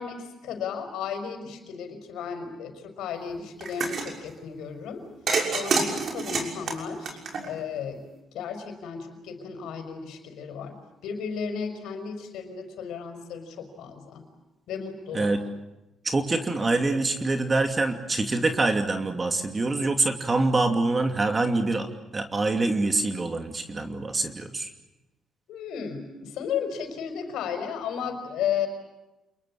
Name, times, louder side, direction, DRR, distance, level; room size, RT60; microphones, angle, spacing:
voice 1, 0.0-5.0 5.5-8.0 8.3-10.8 11.0-14.2 14.7-15.3 25.5-28.7, left 7 dB, 85° left, 7 dB, 5.3 m, -34 dB
sound 1, 3.6-4.1 5.3-7.8, right 4 dB, 55° right, 6.1 m, -27 dB
voice 2, 16.0-24.7, right 2 dB, 30° right, 6 dB, 2.7 m, -25 dB
29.0 x 22.0 x 8.6 m, 1.0 s
cardioid pair, 90°, 0 cm